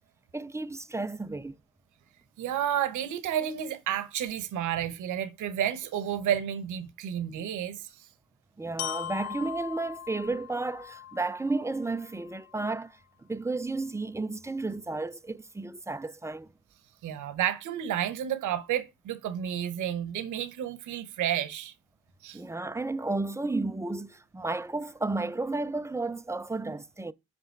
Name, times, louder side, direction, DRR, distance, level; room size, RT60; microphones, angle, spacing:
voice 1, 0.3-1.5 8.6-12.9 13.3-16.5 22.3-27.1, right 3 dB, 10° right, 0.4 m, -32 dB
voice 2, 2.4-8.1 17.0-21.7 22.2-22.4, right 10 dB, 80° right, 1.1 m, -31 dB
Glockenspiel, 8.8-12.8, left 12 dB, 60° left, 0.5 m, -40 dB
5.8 x 5.5 x 4.6 m
cardioid pair, 90°, 30 cm